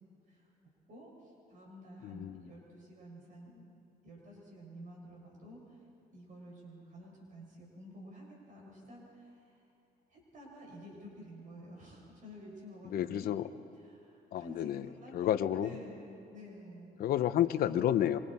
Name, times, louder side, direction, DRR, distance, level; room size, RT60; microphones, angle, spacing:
voice 1, 0.3-3.6 4.0-9.6 10.1-13.4 13.8-17.0, equal, 50° right, -2 dB, 6.0 m, -51 dB
voice 2, 2.0-2.5 12.8-13.5 14.3-14.9 15.1-15.7 17.0-18.2, left 11 dB, 60° left, 12 dB, 0.8 m, -30 dB
25.5 x 25.0 x 4.3 m, 2.6 s
cardioid pair, 110°, 17 cm